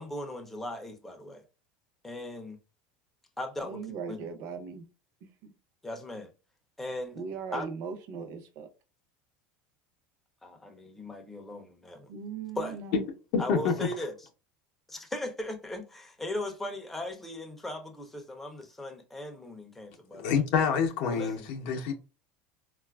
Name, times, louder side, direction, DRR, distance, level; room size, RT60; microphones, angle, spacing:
voice 1, 0.0-1.4 2.0-2.6 3.4-4.3 5.8-6.3 6.8-7.2 7.5-7.7 10.4-12.1 12.6-12.8 13.4-14.3 14.9-20.4 21.1-21.5, left 1 dB, 5° left, 0.4 m, -38 dB
voice 2, 3.6-4.9 5.2-5.5 7.2-8.7 12.1-13.1, right 6 dB, 50° right, 0.6 m, -39 dB
voice 3, 13.3-13.8 20.2-21.9, left 6 dB, 55° left, 0.5 m, -27 dB
3.9 x 2.3 x 2.2 m
cardioid pair, 165°, 5 cm